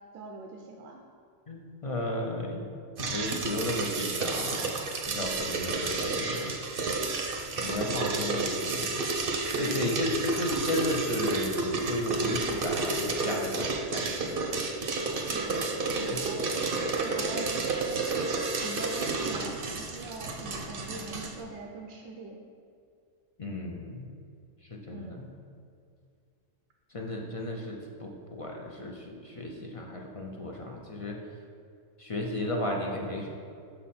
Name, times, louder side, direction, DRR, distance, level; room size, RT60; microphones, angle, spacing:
voice 1, 0.1-1.0 7.6-7.9 9.5-9.9 15.3-18.2 18.6-22.4 24.9-25.2, right 2 dB, 85° right, 1 dB, 1.0 m, -43 dB
voice 2, 1.5-2.7 3.0-4.8 5.1-6.5 7.6-8.9 9.2-14.4 16.1-16.2 23.4-24.1 24.7-25.3 26.9-31.2 32.0-33.3, left 1 dB, 45° left, 0 dB, 0.4 m, -34 dB
sound 1, 3.0-21.4, right 3 dB, 55° right, 0.8 m, -31 dB
6.2 x 5.6 x 4.2 m, 2.4 s
omnidirectional pair, 1.3 m